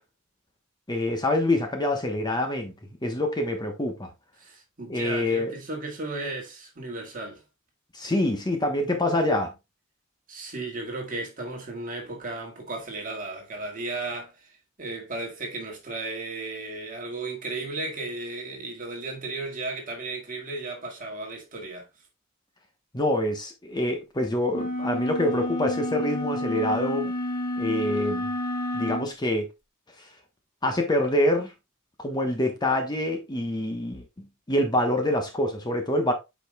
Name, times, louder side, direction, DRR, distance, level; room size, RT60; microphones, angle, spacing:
voice 1, 0.9-2.7 3.0-4.1 4.9-5.5 7.9-9.5 22.9-27.1 27.6-28.3 28.7-29.5 30.0-30.1 30.6-31.5 32.0-36.1, left 1 dB, 20° left, 1.2 m, -26 dB
voice 2, 4.4-7.4 10.3-14.5 14.8-21.9, right 2 dB, 40° right, 2.0 m, -35 dB
sound 1, 24.5-29.1, left 1 dB, 45° left, 1.5 m, -30 dB
8.5 x 5.1 x 2.3 m
head